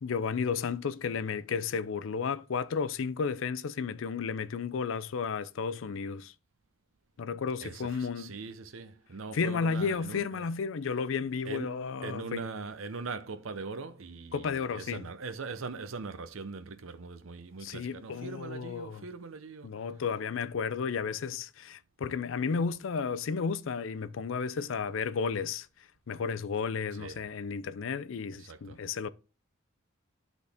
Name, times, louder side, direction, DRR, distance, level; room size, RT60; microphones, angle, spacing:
voice 1, 0.0-6.3 7.2-8.3 9.3-12.5 14.3-15.0 17.6-19.0 19.6-25.7 26.1-29.1, left 5 dB, 75° left, 0.4 m, -33 dB
voice 2, 7.6-10.5 11.4-19.8 26.9-27.2 28.3-28.8, right 4 dB, 80° right, 0.6 m, -41 dB
11.5 x 4.0 x 3.5 m
head